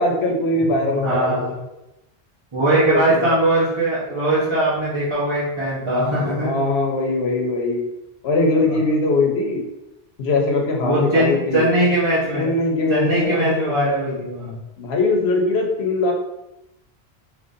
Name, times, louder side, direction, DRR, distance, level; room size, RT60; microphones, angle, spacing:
voice 1, 0.0-1.4 2.9-3.2 5.9-7.9 8.2-9.6 10.2-11.7 12.3-13.8 14.8-16.1, left 2 dB, 85° left, 1 dB, 1.1 m, -21 dB
voice 2, 0.9-1.5 2.5-6.6 8.7-8.8 10.8-12.5 12.9-14.5, right 1 dB, 30° right, -11 dB, 1.1 m, -20 dB
5.1 x 3.0 x 2.6 m, 0.92 s
omnidirectional pair, 1.0 m